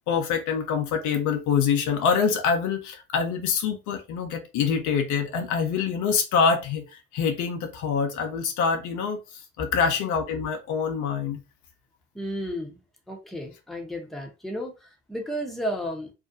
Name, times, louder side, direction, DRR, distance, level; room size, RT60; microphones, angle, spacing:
voice 1, 0.1-9.2 9.6-11.4, left 6 dB, 60° left, 0.7 m, -25 dB
voice 2, 12.1-12.8 13.1-16.1, equal, ahead, 0.8 m, -33 dB
2.4 x 2.2 x 2.6 m
hypercardioid pair, 60°, 34 cm